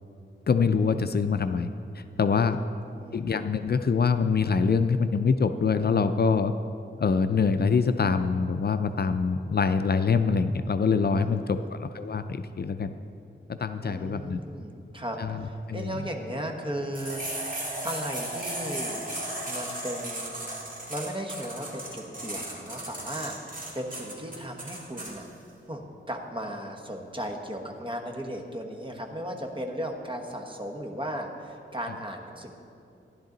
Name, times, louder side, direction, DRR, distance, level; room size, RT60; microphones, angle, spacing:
voice 1, 0.5-1.7 2.0-2.6 3.1-6.5 7.0-12.9 13.5-14.4 15.2-16.0, left 5 dB, 55° left, 9 dB, 0.4 m, -25 dB
voice 2, 2.9-3.2 11.1-11.7 13.8-19.0 19.5-20.5 20.9-25.2 25.7-32.5, equal, 25° right, 2 dB, 1.2 m, -36 dB
sound 1, 16.9-25.1, right 1 dB, 45° right, 2.7 m, -35 dB
15.0 x 11.0 x 3.9 m, 2.6 s
wide cardioid pair, 100°, 20 cm